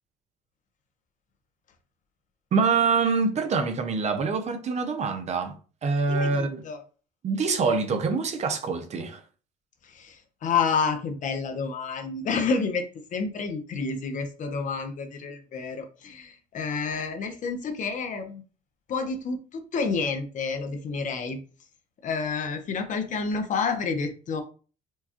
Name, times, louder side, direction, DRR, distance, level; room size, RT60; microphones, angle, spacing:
voice 1, 2.5-5.5 5.8-6.6 7.2-9.2, right 4 dB, 40° right, 0.6 m, -25 dB
voice 2, 6.1-6.8 9.9-10.2 10.4-12.8 13.1-18.4 18.9-21.4 22.0-24.4, left 5 dB, 50° left, 0.7 m, -29 dB
4.5 x 2.3 x 2.8 m
cardioid pair, 110°, 17 cm